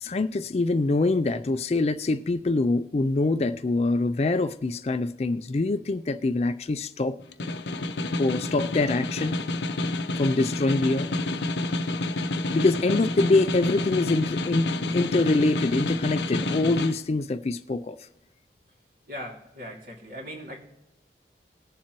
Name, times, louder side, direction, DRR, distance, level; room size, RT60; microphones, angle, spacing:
voice 1, 0.0-7.2 8.2-9.4 10.2-11.1 12.5-18.0, left 2 dB, 35° left, 0.4 m, -24 dB
Snare drum, 7.2-17.0, left 2 dB, 75° left, 0.7 m, -29 dB
voice 2, 19.1-20.6, equal, 55° right, 2.4 m, -39 dB
21.0 x 7.3 x 3.0 m
head